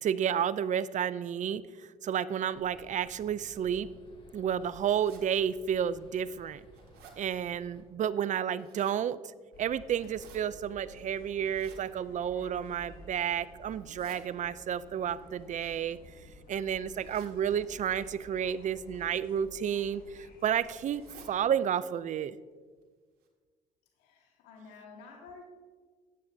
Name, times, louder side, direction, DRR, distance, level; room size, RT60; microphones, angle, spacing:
voice 1, 0.0-3.9 4.3-6.6 7.2-9.2 9.6-16.0 16.5-21.0 21.3-22.4, right 9 dB, 50° right, 17 dB, 0.4 m, -31 dB
sound 1, 2.5-7.8, left 1 dB, 30° left, 2.4 m, -56 dB
sound 2, 5.0-5.2 5.9-6.0 6.4-7.2 8.3-9.0 9.9-10.4 11.4-11.8 12.6-13.0 13.7-14.2 15.3-16.3 17.0-17.4 18.0-18.3 19.3-19.6 19.9-20.0 20.2-20.3 20.9-21.3 21.8-21.9 22.1-22.2 22.8-22.9 23.2-23.3, right 6 dB, 70° right, 1.6 m, -56 dB
sound 3, 9.5-21.4, left 2 dB, 60° left, 1.5 m, -53 dB
voice 2, 24.0-25.4, left 4 dB, 80° left, 1 dB, 1.7 m, -51 dB
13.0 x 8.7 x 2.7 m, 1.5 s
hypercardioid pair, 60°, 17 cm